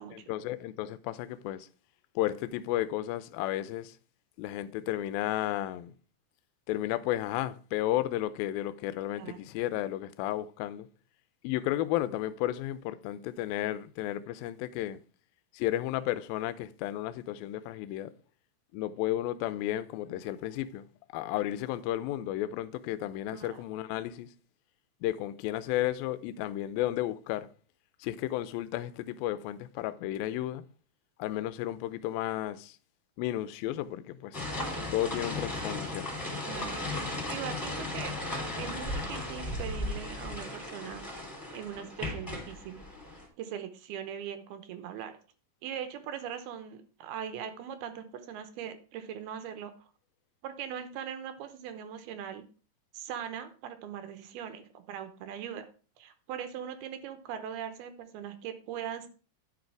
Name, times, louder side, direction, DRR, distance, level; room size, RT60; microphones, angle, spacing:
voice 1, 0.1-1.7 2.2-4.0 4.4-5.9 6.7-10.9 11.4-15.0 15.5-18.1 18.7-20.9 21.1-24.3 25.0-27.5 28.0-30.6 31.2-32.8 33.2-34.4 34.9-36.1, left 14 dB, 80° left, 2.3 m, -33 dB
sound 1, 34.3-43.3, left 1 dB, 5° left, 2.2 m, -36 dB
voice 2, 36.5-38.2 38.6-41.3 41.5-42.8 43.4-45.2 45.6-49.7 50.4-52.4 52.9-55.7 56.0-59.1, right 9 dB, 80° right, 2.8 m, -40 dB
10.5 x 6.6 x 4.7 m
omnidirectional pair, 4.6 m